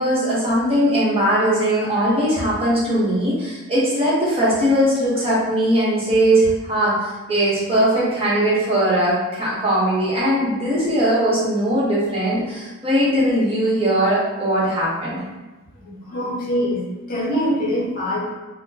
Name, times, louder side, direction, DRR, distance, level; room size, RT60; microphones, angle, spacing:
voice 1, 0.0-15.2, right 1 dB, 25° right, -8 dB, 1.1 m, -19 dB
voice 2, 15.8-18.2, equal, 40° left, -5 dB, 0.9 m, -24 dB
4.2 x 2.2 x 2.8 m, 1.2 s
head